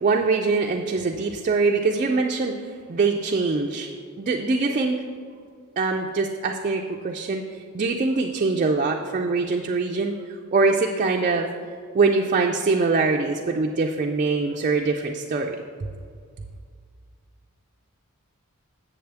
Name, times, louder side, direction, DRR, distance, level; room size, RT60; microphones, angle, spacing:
voice 1, 0.0-2.6 2.9-3.9 4.2-5.0 5.8-7.4 7.7-10.2 10.5-11.5 11.9-15.6, right 3 dB, 35° right, 1 dB, 0.3 m, -23 dB
7.9 x 7.1 x 3.4 m, 2.1 s
head